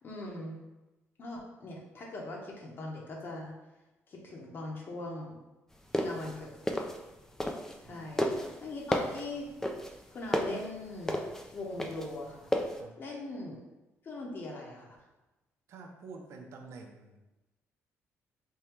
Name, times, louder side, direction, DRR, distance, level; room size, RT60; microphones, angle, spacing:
voice 1, 0.0-0.6 1.2-3.5 4.1-5.4 6.0-6.7 7.8-9.5 10.1-11.2 11.5-12.5 13.0-13.6 14.0-15.0, left 2 dB, 45° left, -2 dB, 0.8 m, -41 dB
sound 1, 5.8-7.9 8.2-12.8, left 1 dB, 10° left, 0.4 m, -32 dB
voice 2, 15.7-17.2, right 4 dB, 65° right, 2 dB, 0.6 m, -48 dB
3.6 x 2.2 x 4.4 m, 1.0 s
cardioid pair, 110°, 5 cm